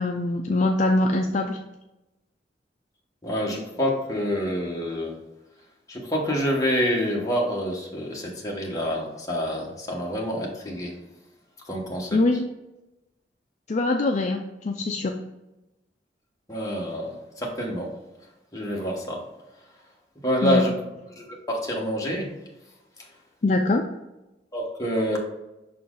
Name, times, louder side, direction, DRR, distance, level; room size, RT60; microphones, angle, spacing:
voice 1, 0.0-1.6 12.1-12.5 13.7-15.2 20.4-20.6 23.4-23.9, left 2 dB, 40° left, 3 dB, 0.4 m, -23 dB
voice 2, 3.2-5.1 5.9-11.0 11.7-12.2 16.5-17.9 18.5-19.3 20.2-20.7 21.2-22.3 24.5-25.2, equal, 20° left, -2 dB, 1.3 m, -27 dB
6.2 x 4.3 x 3.8 m, 0.97 s
head